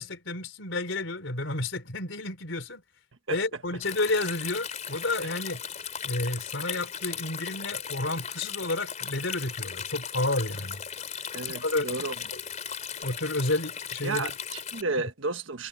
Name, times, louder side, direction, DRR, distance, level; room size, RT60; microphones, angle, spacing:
voice 1, 0.0-2.8 3.3-5.6 6.0-10.8 11.6-11.9 12.3-12.4 13.0-14.3, left 2 dB, 85° left, 3.6 m, -30 dB
Stream, 3.8-14.8, left 8 dB, 40° left, 3.6 m, -37 dB
voice 2, 11.3-12.1 14.0-15.7, right 3 dB, 90° right, 1.4 m, -32 dB
head